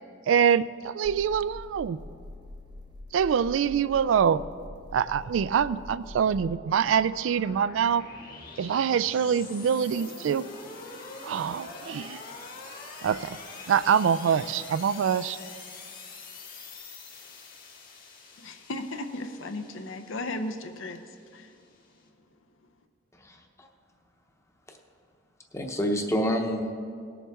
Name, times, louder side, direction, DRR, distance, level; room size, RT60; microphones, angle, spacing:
voice 1, 0.3-2.0 3.1-4.4 4.9-8.0 8.6-10.4 11.2-12.2 13.0-13.4 13.7-15.4, right 7 dB, 75° right, 17 dB, 0.3 m, -25 dB
sound 1, 1.0-6.4, left 1 dB, 25° right, 0.6 m, -45 dB
sound 2, 4.1-22.0, left 3 dB, 45° left, 1.5 m, -46 dB
voice 2, 18.4-21.5, left 2 dB, 80° left, 8 dB, 0.7 m, -36 dB
voice 3, 23.2-23.7 24.7-24.8 25.5-26.7, equal, 15° left, 3 dB, 0.8 m, -28 dB
18.5 x 7.1 x 3.5 m, 2.3 s
head